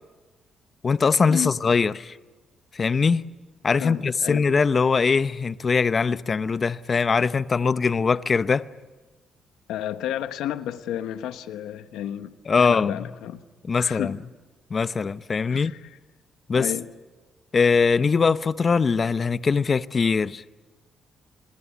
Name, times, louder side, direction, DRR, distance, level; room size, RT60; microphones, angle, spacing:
voice 1, 0.8-2.2 2.7-3.2 3.6-8.7 12.5-13.0 13.7-14.2 14.7-15.7 16.5-16.7 17.5-20.4, left 5 dB, 40° left, 0.7 m, -22 dB
voice 2, 3.8-4.4 9.7-12.3 12.6-13.4 13.8-14.2 15.5-16.0 16.5-16.9, left 11 dB, 90° left, 1.2 m, -31 dB
28.0 x 21.5 x 8.4 m
cardioid pair, 90°, 0 cm